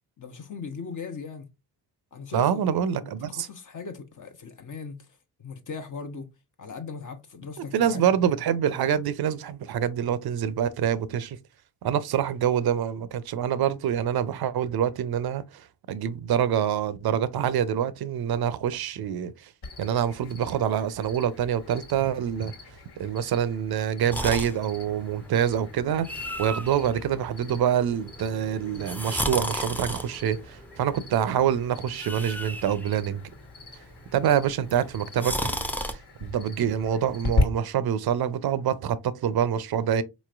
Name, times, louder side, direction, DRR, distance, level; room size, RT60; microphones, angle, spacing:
voice 1, 0.2-1.5 2.1-6.3 6.6-8.4, left 5 dB, 40° left, 0.8 m, -39 dB
voice 2, 2.3-3.5 7.7-11.4 11.8-19.5 19.8-22.5 23.0-26.1 26.4-33.2 34.1-35.5 35.9-40.0, right 9 dB, 55° right, 0.6 m, -26 dB
Cricket, 19.6-37.4, left 2 dB, 60° left, 1.4 m, -38 dB
sound 1, 24.1-35.9, equal, 5° left, 0.5 m, -35 dB
4.1 x 3.0 x 2.4 m
supercardioid pair, 50°, 47 cm